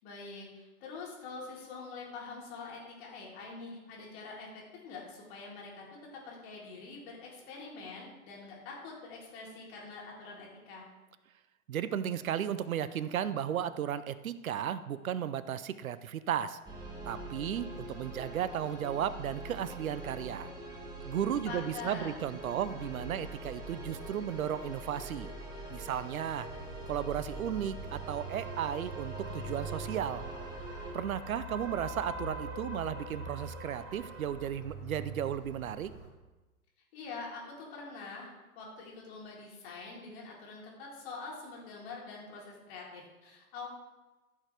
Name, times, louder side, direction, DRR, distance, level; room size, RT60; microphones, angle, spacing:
voice 1, 0.0-5.9 6.1-10.8 21.5-22.2 36.9-43.7, left 4 dB, 45° left, -3 dB, 3.8 m, -45 dB
voice 2, 11.7-16.6 17.0-20.5 21.0-25.3 25.7-26.5 26.9-30.3 30.9-35.9, right 9 dB, 65° right, 14 dB, 0.8 m, -34 dB
sound 1, 16.6-30.9, right 1 dB, 10° right, 1.9 m, -43 dB
sound 2, 26.5-36.1, right 2 dB, 30° right, 3.8 m, -43 dB
14.5 x 6.6 x 3.5 m, 1.1 s
figure-of-eight pair, 115°, 44 cm